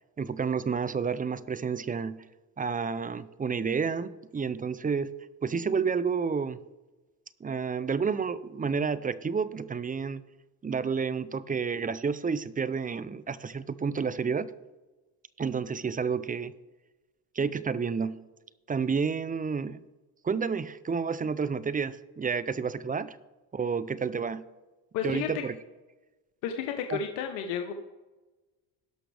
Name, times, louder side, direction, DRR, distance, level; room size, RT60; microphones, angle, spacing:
voice 1, 0.2-2.2 2.6-5.1 5.4-6.6 7.4-10.2 10.6-14.5 15.4-16.5 17.3-18.2 18.7-19.8 20.2-23.2 23.5-24.4 25.0-25.6 26.9-27.0, right 5 dB, 20° right, 16 dB, 0.4 m, -30 dB
voice 2, 24.9-25.3 26.4-27.7, left 8 dB, 90° left, 5 dB, 1.0 m, -31 dB
18.0 x 6.1 x 3.4 m, 1.2 s
supercardioid pair, 85°, 49 cm